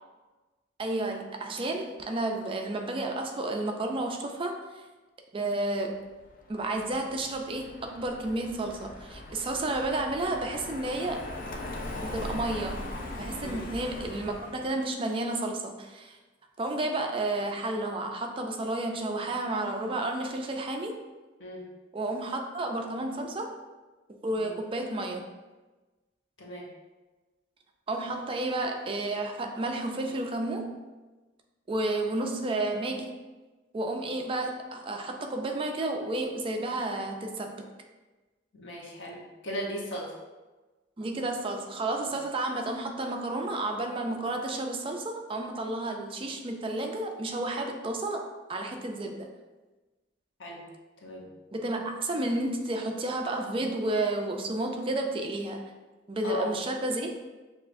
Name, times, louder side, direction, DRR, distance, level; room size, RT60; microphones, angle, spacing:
voice 1, 0.8-4.8 5.3-6.0 6.5-11.2 12.0-12.8 13.2-16.2 16.6-21.0 21.9-23.5 24.2-25.2 27.9-30.8 31.7-33.2 33.7-37.6 41.0-48.2 48.5-49.3 51.5-55.6 56.1-57.2, right 2 dB, 30° right, 3 dB, 0.4 m, -31 dB
Car passing by, 6.2-14.8, left 1 dB, 50° left, 0.5 m, -40 dB
voice 2, 26.4-26.7 38.5-40.1 50.4-50.7 51.0-51.3 56.2-56.5, equal, 85° left, -2 dB, 0.9 m, -36 dB
6.4 x 2.5 x 2.5 m, 1.2 s
head